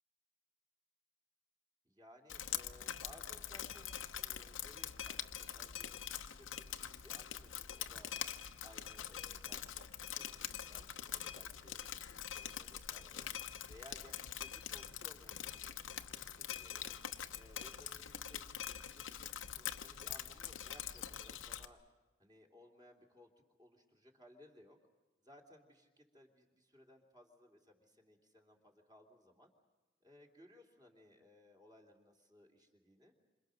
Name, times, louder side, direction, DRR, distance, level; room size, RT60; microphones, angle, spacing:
voice 1, 1.8-8.1 8.6-11.8 12.1-13.3 13.7-16.9 17.3-19.3 19.6-21.8 22.2-23.3 23.6-24.8 25.2-29.5 30.0-33.1, left 1 dB, 20° right, 0 dB, 3.0 m, -62 dB
Drip, 2.3-21.7, left 10 dB, 85° left, 0.9 m, -44 dB
27.5 x 26.5 x 6.5 m, 1.2 s
head